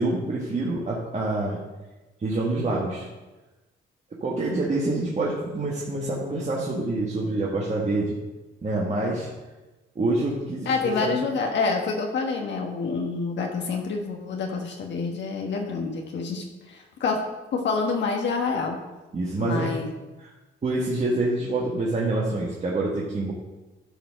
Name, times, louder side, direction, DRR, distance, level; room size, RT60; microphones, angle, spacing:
voice 1, 0.0-1.6 2.2-3.1 4.2-8.2 8.6-9.3 9.9-11.1 19.1-19.8 20.2-20.3 20.6-23.3, right 2 dB, 35° right, -4 dB, 1.6 m, -26 dB
voice 2, 10.6-17.2 17.5-18.8 19.4-19.9, left 4 dB, 65° left, 2 dB, 1.3 m, -27 dB
11.5 x 4.1 x 6.3 m, 1.1 s
cardioid pair, 90°, 20 cm